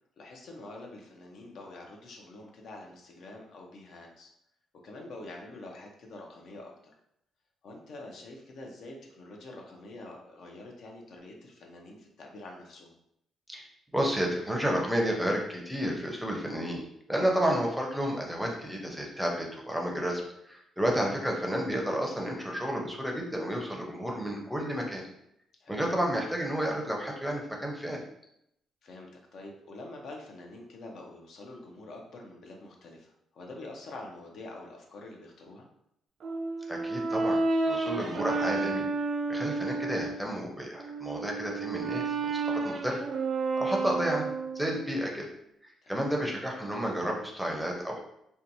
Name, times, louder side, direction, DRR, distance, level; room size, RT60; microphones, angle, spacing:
voice 1, 0.2-4.3 4.8-6.9 7.6-13.0 25.6-25.8 28.8-35.7 45.8-46.0, left 2 dB, 65° left, 0 dB, 0.6 m, -46 dB
voice 2, 13.9-16.8 17.1-25.0 25.7-28.0 36.7-38.9 39.3-43.0 43.6-45.3 45.6-48.0, equal, ahead, 0 dB, 0.6 m, -31 dB
Brass instrument, 36.2-40.2 40.7-44.8, right 3 dB, 55° right, 0.3 m, -31 dB
2.7 x 2.2 x 2.6 m, 0.77 s
cardioid pair, 90°, 0 cm